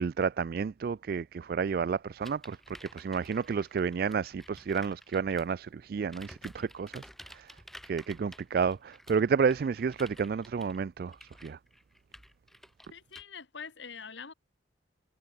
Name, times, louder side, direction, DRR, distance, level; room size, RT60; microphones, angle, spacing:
voice 1, 0.0-11.6, right 6 dB, 50° right, 0.3 m, -31 dB
sound 1, 2.2-5.6 6.0-13.2, equal, ahead, 7.9 m, -52 dB
voice 2, 12.9-14.3, left 6 dB, 70° left, 1.4 m, -44 dB
head